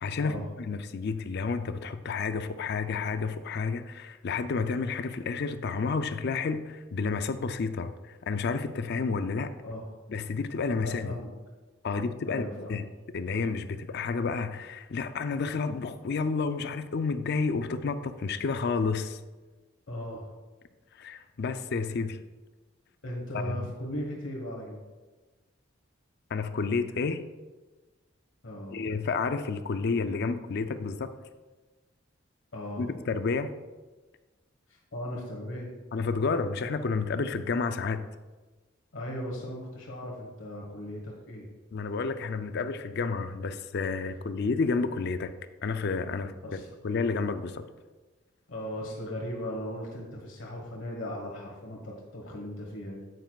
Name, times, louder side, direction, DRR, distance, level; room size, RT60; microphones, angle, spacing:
voice 1, 0.0-9.5 10.1-11.2 11.8-12.4 12.7-12.9 13.1-19.2 21.0-22.2 23.4-23.7 26.3-27.2 28.7-31.1 32.8-33.5 35.9-38.0 41.7-45.3 45.6-46.6 46.8-47.6, left 4 dB, 55° left, 10 dB, 0.4 m, -30 dB
voice 2, 9.6-9.9 10.8-11.3 11.8-12.8 19.9-20.3 23.0-24.8 28.4-28.8 32.5-32.9 34.9-35.7 38.9-41.5 46.4-46.7 48.5-53.1, left 1 dB, 75° left, -1 dB, 1.3 m, -37 dB
8.9 x 8.0 x 2.3 m, 1.2 s
head